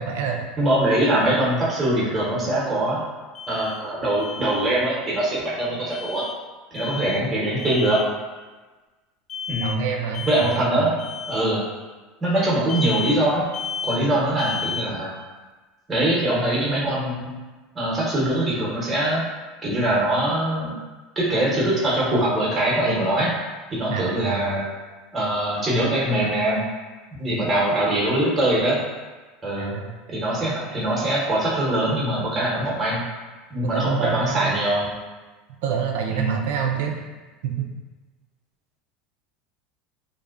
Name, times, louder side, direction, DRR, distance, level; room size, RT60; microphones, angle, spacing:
voice 1, 0.0-0.5 9.6-10.9 23.9-24.6 29.6-29.9 33.6-34.6 35.6-37.0 37.4-37.7, right 7 dB, 75° right, 2 dB, 0.3 m, -27 dB
voice 2, 0.6-3.0 3.5-6.2 6.7-8.0 9.5-9.8 10.3-11.0 11.3-11.6 12.2-13.4 13.9-15.1 15.9-17.3 17.7-19.2 19.6-20.8 21.2-23.3 23.7-24.6 25.1-26.6 27.2-28.8 29.4-29.7 30.1-33.0 33.5-34.9 36.1-36.4, right 1 dB, 20° right, -6 dB, 0.9 m, -22 dB
Alarm, 3.3-3.8 4.2-4.6 5.9-6.4 6.7-7.2 7.6-8.1 9.3-9.8 10.1-10.6 11.0-11.4 12.7-13.2 13.5-14.0 14.4-14.9, left 6 dB, 45° left, 0.4 m, -32 dB
2.5 x 2.1 x 2.4 m, 1.3 s
hypercardioid pair, 90°, 0 cm